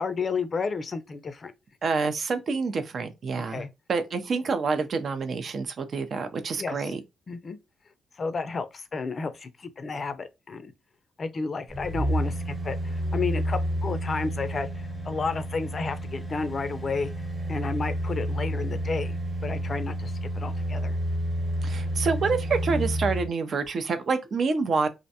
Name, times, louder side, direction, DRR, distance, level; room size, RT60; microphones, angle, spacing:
voice 1, 0.0-1.5 3.5-3.7 6.6-6.9 7.3-7.6 8.2-10.7 11.2-17.1 17.5-21.0, left 4 dB, 45° left, 0.4 m, -32 dB
voice 2, 1.8-3.6 3.9-7.0 21.6-24.9, right 4 dB, 55° right, 0.5 m, -27 dB
sound 1, 11.7-23.3 23.7-23.8, right 1 dB, 15° right, 0.9 m, -30 dB
2.5 x 2.1 x 2.7 m
cardioid pair, 75°, 0 cm